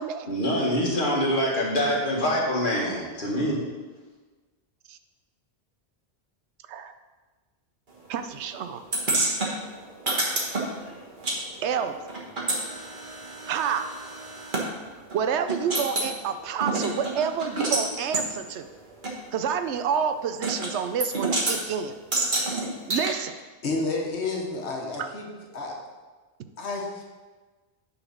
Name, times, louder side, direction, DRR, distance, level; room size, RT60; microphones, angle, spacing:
voice 1, 0.3-3.6, equal, 50° left, -4 dB, 1.9 m, -25 dB
voice 2, 8.1-8.8 11.6-11.9 13.5-13.9 15.1-18.7 19.3-22.0 22.9-23.3, right 7 dB, 85° right, 9 dB, 0.9 m, -28 dB
sound 1, 8.9-11.4 11.6-14.7 15.1-15.2 15.5-16.1 16.6-17.9 18.1-18.3 19.0-19.1 20.4-20.7 21.0-21.6 22.1-23.1, right 2 dB, 45° right, 1.5 m, -28 dB
voice 3, 23.6-25.3 25.5-25.8 26.6-27.0, left 3 dB, 75° left, 0 dB, 1.5 m, -30 dB
8.9 x 4.2 x 5.4 m, 1.3 s
omnidirectional pair, 1.1 m